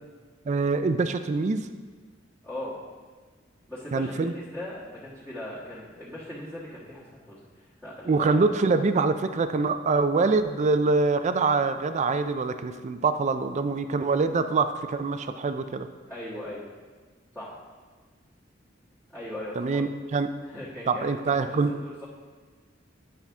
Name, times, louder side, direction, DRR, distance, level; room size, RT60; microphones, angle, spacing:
voice 1, 0.5-1.7 3.9-4.3 8.1-15.9 19.6-20.3 20.9-21.8, right 4 dB, 35° right, 10 dB, 0.4 m, -25 dB
voice 2, 2.4-2.8 3.7-8.4 16.1-16.7 17.3-17.5 19.1-19.9 20.4-22.1, left 1 dB, 10° left, -12 dB, 1.4 m, -39 dB
10.0 x 5.7 x 3.5 m, 1.4 s
head